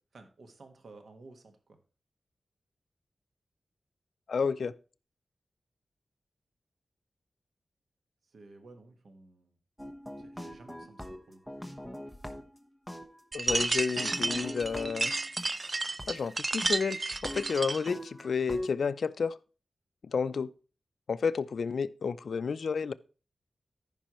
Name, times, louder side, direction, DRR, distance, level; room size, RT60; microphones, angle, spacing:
voice 1, 0.1-1.8 8.3-9.6 10.2-11.4, right 3 dB, 75° right, 1.4 m, -54 dB
voice 2, 4.3-4.7 13.3-15.1 16.1-19.3 20.1-20.5 21.1-22.9, left 5 dB, 80° left, 0.4 m, -31 dB
sound 1, 9.8-12.6 12.9-15.5 16.0-16.1 16.6-16.7 17.1-18.7, left 1 dB, ahead, 1.0 m, -41 dB
sound 2, 13.3-17.9, right 3 dB, 35° right, 0.4 m, -32 dB
14.5 x 5.4 x 3.0 m
wide cardioid pair, 105°, 0 cm